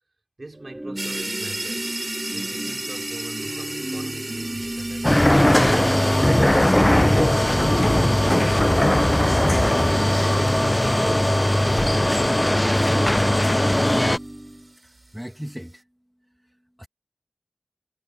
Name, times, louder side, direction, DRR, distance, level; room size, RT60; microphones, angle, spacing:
voice 1, 0.4-1.9 2.3-5.2, right 2 dB, 80° right, 4.1 m, -40 dB
Organ / Church bell, 0.5-14.7, right 1 dB, 30° right, 2.7 m, -33 dB
sound 1, 1.0-14.6, right 2 dB, 60° right, 6.7 m, -36 dB
sound 2, 5.0-14.2, left 1 dB, 25° left, 0.6 m, -19 dB
voice 2, 14.8-15.8 16.8-16.9, equal, 5° right, 1.5 m, -37 dB
wide cardioid pair, 40°, 0 cm